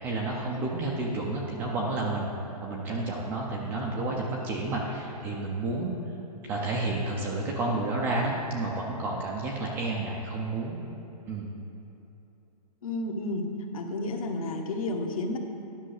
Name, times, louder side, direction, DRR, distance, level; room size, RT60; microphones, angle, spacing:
voice 1, 0.0-2.3 2.6-5.9 6.4-10.8 11.3-11.5, right 2 dB, 10° right, -2 dB, 0.4 m, -30 dB
voice 2, 12.8-13.5 13.7-15.4, left 2 dB, 55° left, 3 dB, 1.3 m, -31 dB
10.0 x 6.1 x 6.4 m, 2.9 s
hypercardioid pair, 165°, 21 cm